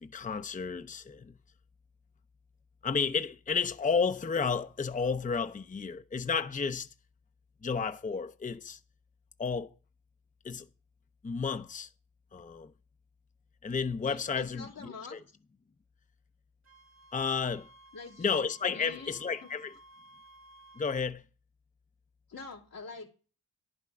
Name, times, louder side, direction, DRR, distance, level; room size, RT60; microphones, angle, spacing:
voice 1, 0.0-1.4 2.8-6.9 7.6-8.8 9.4-9.7 10.4-10.7 11.2-11.9 12.3-12.7 13.6-15.2 17.1-17.7 18.2-19.7 20.8-21.2, left 5 dB, 25° left, 0.6 m, -32 dB
voice 2, 14.1-15.2 17.9-18.3 18.7-19.1 19.4-19.5 22.3-23.1, left 4 dB, 90° left, 2.5 m, -45 dB
Wind instrument woodwind instrument, 16.6-20.9, right 2 dB, 50° right, 1.6 m, -56 dB
10.5 x 6.1 x 5.9 m
cardioid pair, 45°, 35 cm